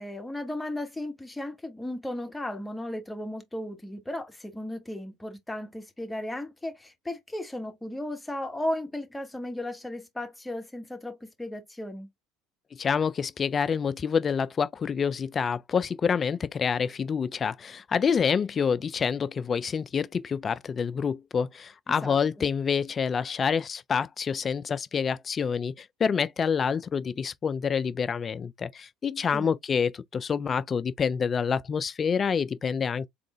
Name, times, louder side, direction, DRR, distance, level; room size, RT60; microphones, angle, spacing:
voice 1, 0.0-12.1 22.0-22.4 29.3-29.5, left 1 dB, 10° left, 1.3 m, -35 dB
voice 2, 12.7-33.1, left 6 dB, 30° left, 0.3 m, -27 dB
3.7 x 3.0 x 3.0 m
figure-of-eight pair, 65°, 0 cm